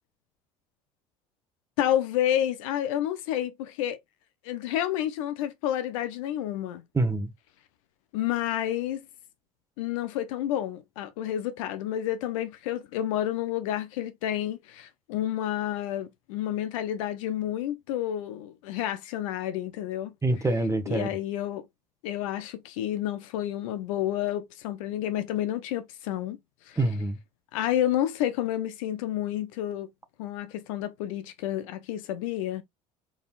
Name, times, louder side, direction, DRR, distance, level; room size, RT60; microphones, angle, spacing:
voice 1, 1.8-4.0 4.4-6.8 8.1-9.0 9.8-20.1 20.9-21.6 22.0-26.4 26.7-26.8 27.5-29.9 30.2-32.6, left 12 dB, 75° left, 0.8 m, -30 dB
voice 2, 6.9-7.3 20.2-21.1 26.8-27.2, right 2 dB, 15° right, 1.2 m, -25 dB
4.1 x 3.7 x 2.5 m
hypercardioid pair, 70°, 17 cm